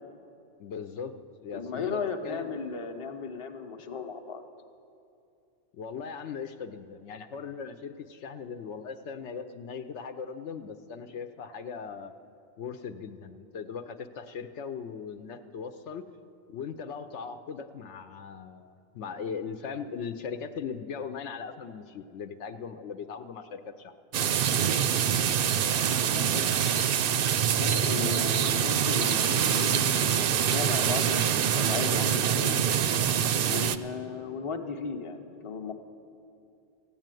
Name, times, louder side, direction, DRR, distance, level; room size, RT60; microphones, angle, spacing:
voice 1, 0.6-2.6 5.7-12.1 12.6-16.0 16.5-23.9 27.9-28.3, left 6 dB, 75° left, 8 dB, 0.9 m, -39 dB
voice 2, 1.5-4.4 25.1-25.4 26.1-26.5 27.6-32.6 33.5-35.7, left 5 dB, 30° left, 4 dB, 0.7 m, -35 dB
sound 1, 24.1-33.8, right 9 dB, 60° right, 0.6 m, -25 dB
15.0 x 8.9 x 9.0 m, 2.6 s
omnidirectional pair, 1.2 m